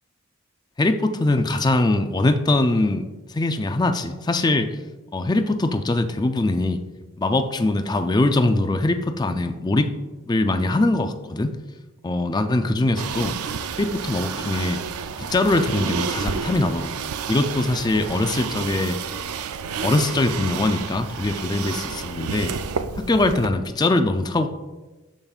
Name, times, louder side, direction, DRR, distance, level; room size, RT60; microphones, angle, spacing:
voice 1, 0.8-4.8 5.1-6.8 7.2-9.9 10.3-11.5 12.0-13.4 13.8-14.8 15.2-19.0 19.8-22.5 23.0-24.5, left 2 dB, 20° left, 8 dB, 0.4 m, -22 dB
sound 1, 13.0-23.5, right 6 dB, 80° right, 0.4 m, -30 dB
12.5 x 5.2 x 2.4 m, 1.2 s
head